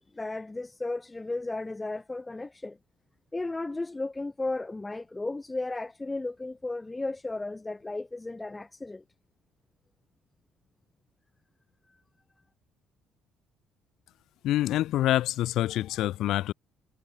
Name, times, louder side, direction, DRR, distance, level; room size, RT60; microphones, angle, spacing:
voice 1, 0.1-2.8 3.3-9.0 11.9-12.0, left 2 dB, 10° left, 3.8 m, -34 dB
voice 2, 14.4-16.5, left 14 dB, 60° left, 3.6 m, -26 dB
cardioid pair, 175°, 0 cm